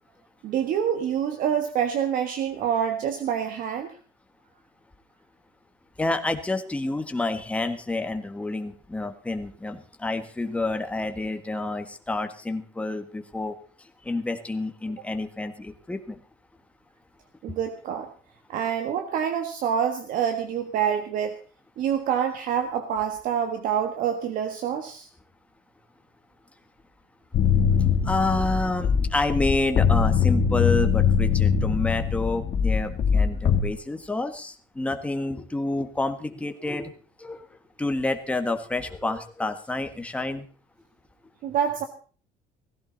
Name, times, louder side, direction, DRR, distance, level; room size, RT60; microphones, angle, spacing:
voice 1, 0.4-3.9 17.4-18.1 18.5-21.4 21.8-25.1 41.4-41.8, right 8 dB, 60° right, 6 dB, 1.7 m, -26 dB
voice 2, 6.0-16.2 17.5-17.6 28.0-36.9 37.2-37.5 37.8-40.5, left 2 dB, 10° left, 7 dB, 1.6 m, -29 dB
sound 1, 27.3-33.6, left 7 dB, 45° left, 1.8 m, -22 dB
17.5 x 15.5 x 4.1 m, 0.41 s
cardioid pair, 145°, 16 cm